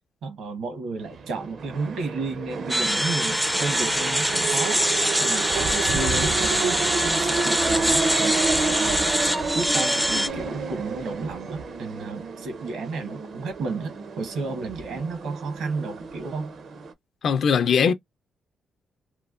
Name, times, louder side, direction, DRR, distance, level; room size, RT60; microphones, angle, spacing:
voice 1, 0.2-4.8 5.2-8.4 8.7-9.1 9.5-16.5, right 3 dB, 75° right, 1.1 m, -32 dB
sound 1, 1.0-16.9, right 4 dB, 55° right, 0.5 m, -30 dB
sound 2, 2.7-10.3, equal, ahead, 0.4 m, -24 dB
voice 2, 17.2-17.9, left 6 dB, 55° left, 0.5 m, -20 dB
3.1 x 2.1 x 2.4 m
cardioid pair, 115°, 0 cm